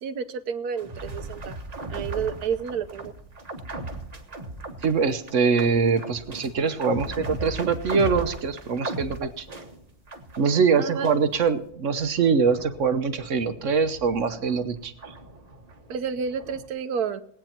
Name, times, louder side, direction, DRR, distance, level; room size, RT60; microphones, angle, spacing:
voice 1, 0.0-1.6 1.9-3.1 10.8-11.1 15.9-17.2, right 6 dB, 80° right, 11 dB, 1.4 m, -30 dB
sound 1, 0.8-10.6 11.0-16.7, right 2 dB, 30° right, 1.2 m, -38 dB
voice 2, 4.8-9.5 10.4-14.9, right 5 dB, 60° right, 10 dB, 1.2 m, -23 dB
19.0 x 9.0 x 4.4 m, 0.64 s
omnidirectional pair, 1.6 m